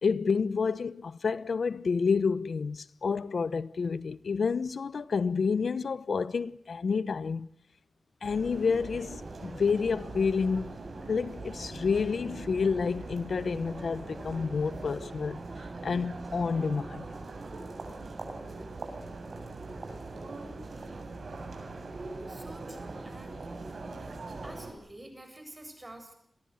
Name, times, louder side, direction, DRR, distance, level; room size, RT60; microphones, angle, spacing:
voice 1, 0.0-7.5 8.2-10.8 11.1-15.4 15.8-17.0, left 5 dB, 75° left, 1.0 m, -29 dB
sound 1, 8.2-24.7, right 3 dB, 65° right, 7.5 m, -41 dB
voice 2, 22.3-23.4 24.4-26.1, right 1 dB, 20° right, 7.7 m, -48 dB
29.5 x 23.0 x 6.5 m
wide cardioid pair, 120°, 0 cm